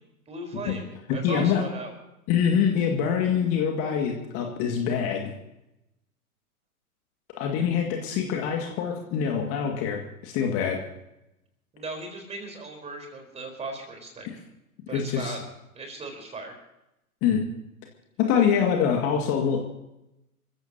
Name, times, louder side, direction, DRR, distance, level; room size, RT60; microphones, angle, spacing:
voice 1, 0.3-0.8 1.1-1.9 11.7-14.3 14.9-15.4 15.7-16.6, right 3 dB, 15° right, 4 dB, 4.1 m, -37 dB
voice 2, 1.2-1.6 2.3-5.3 7.4-10.8 14.3-14.4 14.9-15.4 17.2-17.5 18.2-19.6, left 7 dB, 30° left, 2 dB, 2.1 m, -25 dB
28.5 x 15.5 x 2.9 m, 0.89 s
figure-of-eight pair, 105°, 45 cm